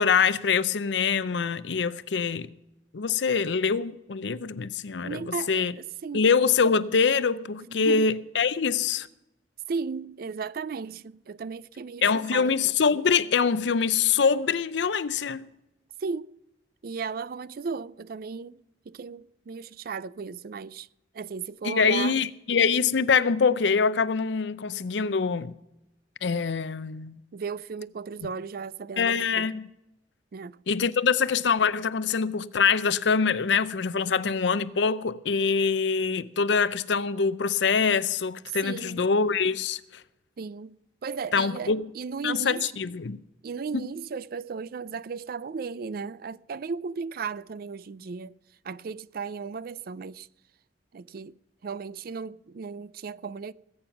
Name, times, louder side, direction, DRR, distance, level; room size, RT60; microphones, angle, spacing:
voice 1, 0.0-2.5 2.9-5.7 6.1-9.1 12.0-15.5 21.6-25.5 26.2-27.2 29.0-29.7 30.7-39.8 41.3-41.8 42.2-43.2 43.7-43.8, left 5 dB, 75° left, 0.6 m, -24 dB
voice 2, 5.0-6.3 7.6-8.1 9.7-12.7 16.0-16.4 16.8-20.9 21.1-22.2 27.3-29.5 30.3-30.6 38.6-39.1 40.4-42.7 43.4-48.3 48.6-50.3 50.9-51.4 51.6-53.5, right 5 dB, 55° right, 0.4 m, -35 dB
19.5 x 8.8 x 5.8 m
head